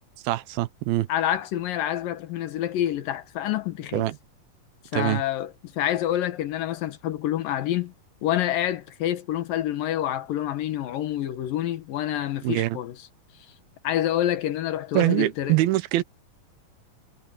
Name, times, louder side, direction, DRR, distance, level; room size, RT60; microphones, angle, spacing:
voice 1, 0.2-1.1 3.9-4.2 4.9-5.2 12.4-12.8 14.9-16.0, right 17 dB, 85° right, 2.7 m, -23 dB
voice 2, 1.1-4.1 4.9-7.9 8.2-13.0 13.8-15.6, left 12 dB, 75° left, 2.8 m, -27 dB
omnidirectional pair, 4.2 m